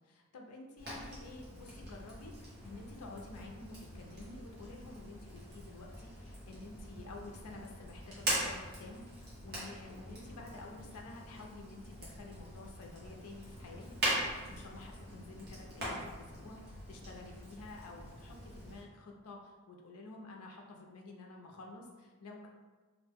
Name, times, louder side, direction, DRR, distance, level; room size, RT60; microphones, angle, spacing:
voice 1, 0.0-22.5, left 2 dB, 80° left, 1 dB, 0.5 m, -50 dB
Fire, 0.8-18.8, right 1 dB, 45° right, 0.9 m, -42 dB
2.5 x 2.1 x 3.3 m, 1.3 s
head